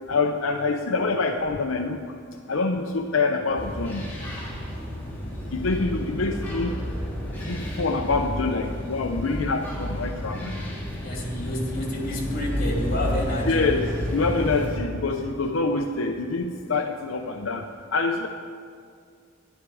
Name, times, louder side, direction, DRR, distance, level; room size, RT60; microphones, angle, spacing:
voice 1, 0.1-2.0 2.5-4.1 5.5-6.8 7.4-10.6 13.5-13.8 14.1-17.6 17.9-18.3, left 3 dB, 85° left, 3 dB, 0.7 m, -25 dB
sound 1, 3.5-14.7, equal, 10° left, 2.8 m, -31 dB
voice 2, 11.0-13.7, left 1 dB, 50° left, -1 dB, 2.7 m, -29 dB
12.5 x 11.0 x 4.8 m, 2.2 s
head